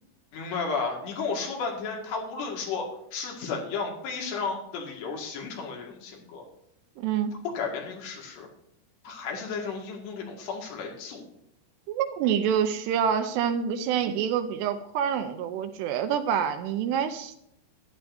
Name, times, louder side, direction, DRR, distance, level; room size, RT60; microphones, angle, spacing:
voice 1, 0.3-6.4 7.4-8.5 9.0-11.2, left 4 dB, 75° left, 0 dB, 4.0 m, -33 dB
voice 2, 7.0-7.3 11.9-17.4, right 8 dB, 80° right, 8 dB, 2.7 m, -27 dB
14.0 x 11.5 x 2.7 m, 0.74 s
omnidirectional pair, 5.1 m